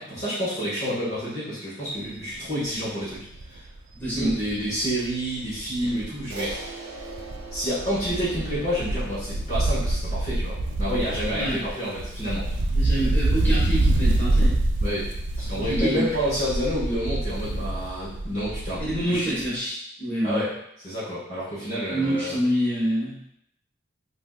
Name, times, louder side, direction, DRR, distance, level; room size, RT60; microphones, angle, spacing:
voice 1, 0.0-3.6 4.1-6.6 7.5-12.4 14.8-15.1 15.4-18.8 19.1-19.4 20.2-20.5 20.8-22.4, equal, 35° left, -10 dB, 0.9 m, -29 dB
Wind, 2.1-2.4 2.8-2.9 3.1-6.7 7.0-19.1 19.4-19.5, right 2 dB, 65° right, 0.4 m, -26 dB
voice 2, 3.9-4.4 11.3-11.6 12.7-14.6 15.6-16.1 18.8-20.4 21.9-23.2, right 1 dB, 10° left, -9 dB, 1.2 m, -26 dB
Crash cymbal, 6.3-10.9, right 3 dB, 80° right, 0.7 m, -41 dB
3.4 x 2.5 x 2.3 m, 0.75 s
head